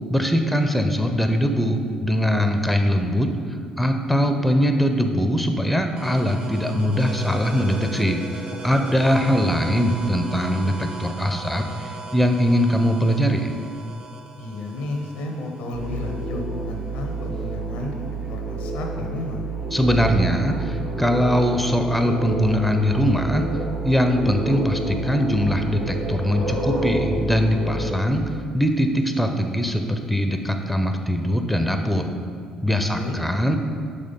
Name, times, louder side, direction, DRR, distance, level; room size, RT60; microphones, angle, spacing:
voice 1, 0.1-3.3 3.8-8.2 8.6-13.5 19.7-23.5 23.8-28.2 28.5-32.1 32.6-33.6, equal, ahead, 6 dB, 0.5 m, -21 dB
sound 1, 6.0-17.4, right 3 dB, 45° right, 0.6 m, -38 dB
voice 2, 14.4-17.9 18.3-19.5 32.9-33.2, left 2 dB, 70° left, 2 dB, 0.7 m, -32 dB
sound 2, 15.7-27.9, right 2 dB, 80° right, 1.1 m, -29 dB
5.6 x 3.4 x 5.2 m, 2.2 s
hypercardioid pair, 50°, 3 cm